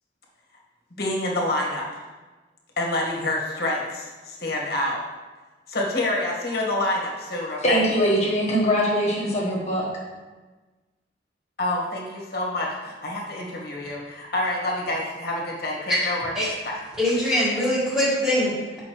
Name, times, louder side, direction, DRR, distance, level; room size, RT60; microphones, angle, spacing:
voice 1, 1.0-1.8 2.8-3.8 4.4-5.0 5.7-7.8 11.6-12.7 13.0-14.0 14.3-16.3, left 1 dB, 55° left, -2 dB, 1.4 m, -27 dB
voice 2, 7.6-9.9, equal, 35° left, -4 dB, 1.2 m, -22 dB
voice 3, 17.0-18.8, left 1 dB, 5° right, -12 dB, 1.8 m, -23 dB
8.6 x 5.4 x 3.0 m, 1.3 s
head